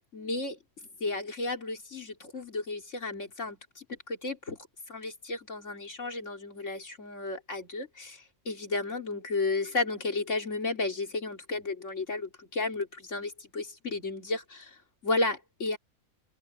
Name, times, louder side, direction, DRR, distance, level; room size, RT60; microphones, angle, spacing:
voice 1, 0.1-0.6 1.0-4.6 4.9-15.8, left 3 dB, 55° left, 3.5 m, -33 dB
omnidirectional pair, 1.6 m